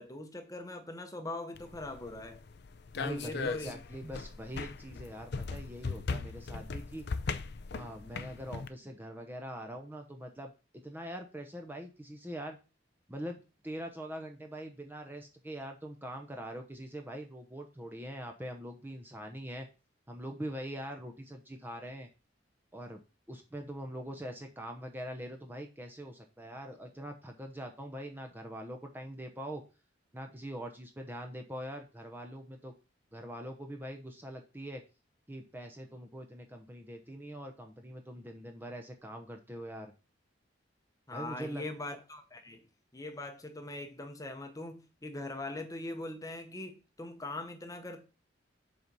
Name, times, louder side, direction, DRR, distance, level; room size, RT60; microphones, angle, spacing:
voice 1, 0.0-2.4 3.0-4.1 41.1-42.6 42.9-48.0, left 2 dB, 20° left, 1.0 m, -41 dB
sound 1, 1.5-8.7, left 4 dB, 60° left, 0.5 m, -39 dB
voice 2, 3.0-7.0 7.7-12.6 13.1-19.7 20.1-22.1 22.7-23.0 23.3-29.6 30.1-32.7 33.1-34.8 35.3-39.9 41.1-41.6, equal, 10° right, 0.8 m, -43 dB
7.6 x 4.2 x 5.4 m
head